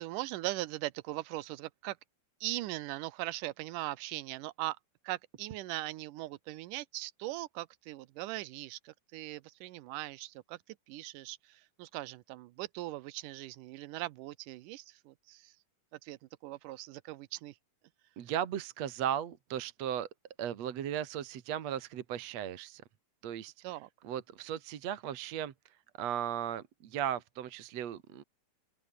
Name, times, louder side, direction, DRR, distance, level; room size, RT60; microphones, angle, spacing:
voice 1, 0.0-2.0 2.4-4.8 5.0-10.6 10.9-15.5 16.0-17.5 23.6-23.9, right 17 dB, 90° right, 2.4 m, -40 dB
voice 2, 18.2-20.1 20.4-22.8 23.2-23.5 24.0-25.5 26.0-28.2, right 10 dB, 60° right, 2.6 m, -36 dB
open air
omnidirectional pair, 3.6 m